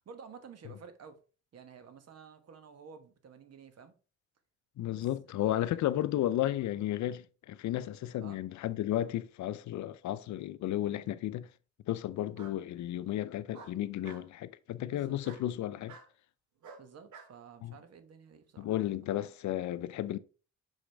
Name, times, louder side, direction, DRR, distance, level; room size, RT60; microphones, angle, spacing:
voice 1, 0.0-1.2 1.5-3.9 4.8-5.8 8.2-8.4 14.9-15.2 16.8-18.7, right 6 dB, 55° right, 1.3 m, -52 dB
voice 2, 4.8-11.5 11.9-16.0 17.6-17.7 18.6-20.2, left 13 dB, 70° left, 0.5 m, -33 dB
Bark, 10.2-10.8 12.3-12.6 13.5-14.3 15.2-15.5 15.9-16.1 16.6-17.3, right 5 dB, 75° right, 1.4 m, -51 dB
6.3 x 5.0 x 3.4 m
cardioid pair, 90°, 30 cm